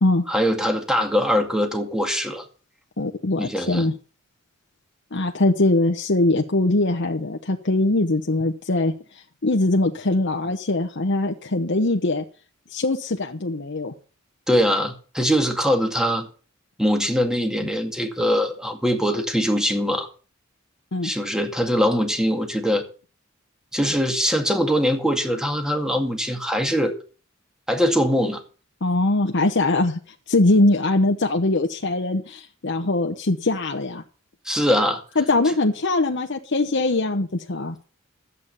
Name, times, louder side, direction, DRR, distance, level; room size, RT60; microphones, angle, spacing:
voice 1, 0.3-2.4 3.4-3.9 14.5-16.3 16.8-20.1 21.0-22.8 23.7-26.9 27.7-28.4 34.5-35.0, equal, 5° right, 5 dB, 2.1 m, -22 dB
voice 2, 3.0-3.9 5.1-8.9 9.4-12.2 12.7-13.9 20.9-21.1 28.8-30.0 30.3-34.0 35.2-37.7, left 2 dB, 60° left, 3 dB, 1.1 m, -22 dB
12.5 x 8.4 x 7.0 m, 0.38 s
head